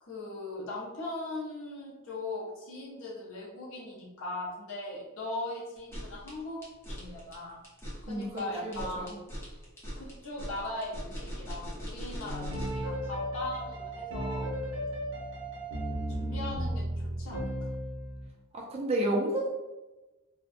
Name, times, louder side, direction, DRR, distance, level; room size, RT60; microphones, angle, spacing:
voice 1, 0.0-6.6 6.9-7.6 8.1-9.1 10.0-14.5 16.1-17.7, left 2 dB, 65° left, -5 dB, 0.6 m, -39 dB
sound 1, 5.8-12.9, equal, 10° left, 0.7 m, -40 dB
voice 2, 8.1-9.2 18.5-19.5, right 1 dB, 30° right, -2 dB, 0.4 m, -31 dB
sound 2, 12.2-18.3, right 1 dB, 70° right, 0.8 m, -35 dB
2.5 x 2.1 x 2.5 m, 1.1 s
head